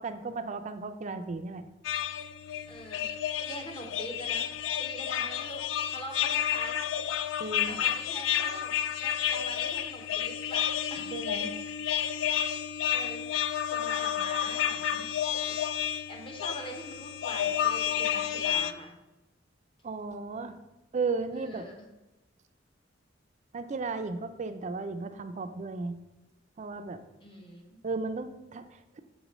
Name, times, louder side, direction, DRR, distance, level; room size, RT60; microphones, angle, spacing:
voice 1, 0.0-1.6 7.4-7.8 11.1-11.5 19.8-20.5 20.9-21.7 23.5-25.9 26.6-27.0 27.8-29.0, right 4 dB, 40° right, 8 dB, 0.4 m, -35 dB
sound 1, 1.8-18.7, left 10 dB, 70° left, 0.3 m, -31 dB
voice 2, 2.7-3.1 3.4-4.4 4.8-7.2 7.7-11.2 12.7-13.2 13.6-15.4 15.8-18.9 21.3-21.7 27.2-27.8, equal, 25° left, 1 dB, 0.9 m, -44 dB
6.1 x 3.0 x 5.1 m, 0.99 s
head